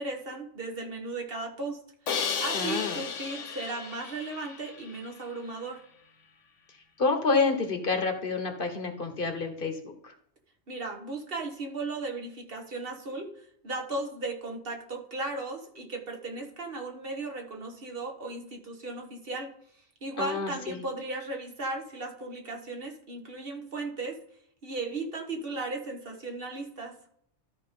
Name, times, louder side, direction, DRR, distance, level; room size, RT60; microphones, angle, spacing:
voice 1, 0.0-1.8 2.4-5.8 10.7-19.5 20.0-24.2 24.6-26.9, right 2 dB, 50° right, 2 dB, 1.5 m, -36 dB
Crash cymbal, 2.1-5.1, left 6 dB, 85° left, 1.2 m, -34 dB
voice 2, 2.5-3.0 7.0-10.1 20.2-20.8, left 4 dB, 50° left, 5 dB, 1.3 m, -28 dB
13.0 x 4.9 x 3.7 m, 0.68 s
omnidirectional pair, 1.2 m